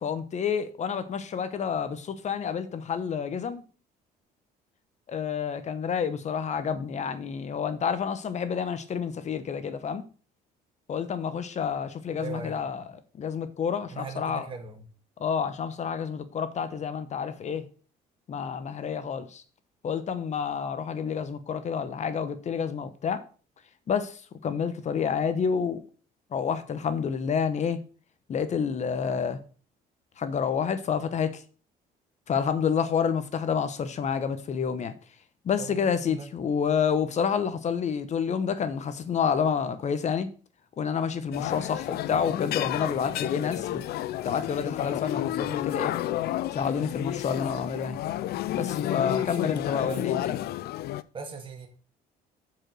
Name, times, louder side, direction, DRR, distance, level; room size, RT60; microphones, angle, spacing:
voice 1, 0.0-3.6 5.1-10.0 10.9-12.8 13.2-14.5 15.2-17.7 18.3-19.4 19.8-23.2 23.9-25.8 26.3-27.8 28.3-29.4 30.2-31.4 32.3-34.9 35.4-40.3 40.8-43.8 44.2-45.9 46.5-48.0 48.5-50.4, left 7 dB, 45° left, 1.0 m, -29 dB
voice 2, 12.2-12.5 13.9-14.8 35.6-36.3 48.8-49.3 49.5-50.1 51.1-51.7, right 4 dB, 30° right, 2.0 m, -40 dB
sound 1, 41.3-51.0, left 13 dB, 70° left, 0.5 m, -31 dB
7.4 x 5.1 x 6.2 m
cardioid pair, 110°, 17 cm